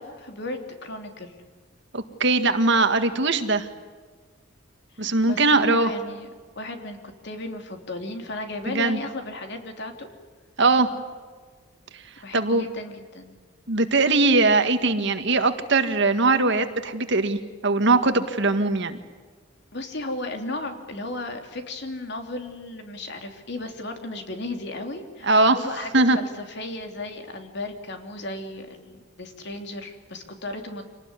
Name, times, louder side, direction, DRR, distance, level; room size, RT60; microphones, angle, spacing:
voice 1, 0.0-1.4 4.9-6.3 6.5-10.1 12.2-13.3 19.7-30.8, left 2 dB, 55° left, 5 dB, 3.2 m, -35 dB
voice 2, 1.9-3.7 5.0-5.9 8.6-9.0 10.6-10.9 12.3-12.7 13.7-19.0 25.2-25.6 25.9-26.2, right 3 dB, 60° right, 8 dB, 1.8 m, -20 dB
27.0 x 19.0 x 9.8 m, 1.5 s
head